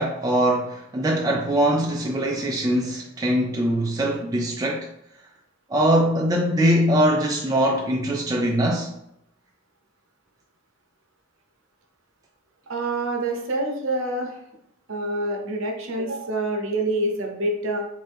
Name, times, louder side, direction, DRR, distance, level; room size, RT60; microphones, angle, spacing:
voice 1, 0.0-4.9 5.7-8.9, right 1 dB, 15° right, 0.3 m, -22 dB
voice 2, 12.7-14.4 14.9-17.9, right 1 dB, 60° right, 0.7 m, -26 dB
3.3 x 2.7 x 3.4 m
head